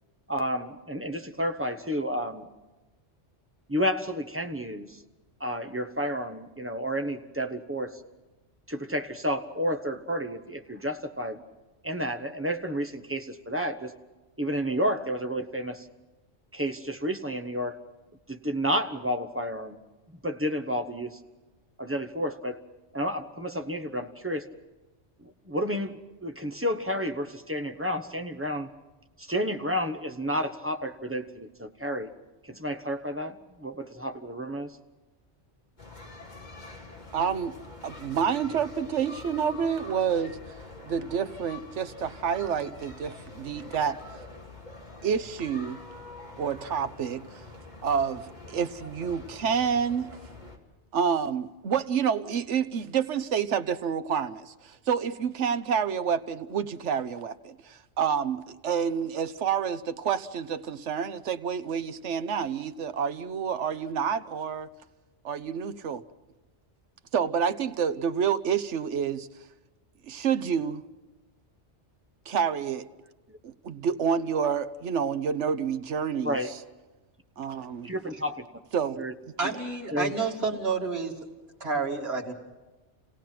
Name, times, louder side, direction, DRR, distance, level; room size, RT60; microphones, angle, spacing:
voice 1, 0.3-2.5 3.7-5.0 5.4-8.0 8.7-11.4 11.8-13.9 14.4-15.9 16.5-17.8 18.3-19.8 20.2-21.2 21.8-22.6 22.9-24.5 25.2-28.7 29.2-32.1 32.4-34.8 73.3-73.4 76.2-76.5 77.8-78.4 79.0-79.1 79.9-80.1, equal, 10° right, 1.0 m, -31 dB
sound 1, 35.8-50.6, left 3 dB, 40° left, 2.9 m, -45 dB
voice 2, 37.1-37.6 37.8-40.4 40.9-44.0 45.0-45.8 46.4-47.4 47.8-50.2 50.9-64.7 65.2-66.0 67.1-69.3 70.0-70.8 72.3-72.9 73.4-76.4 77.4-77.9 78.7-79.0, right 7 dB, 80° right, 1.2 m, -28 dB
voice 3, 79.4-81.1 81.6-82.3, right 4 dB, 60° right, 2.7 m, -29 dB
29.5 x 17.5 x 5.9 m
omnidirectional pair, 1.2 m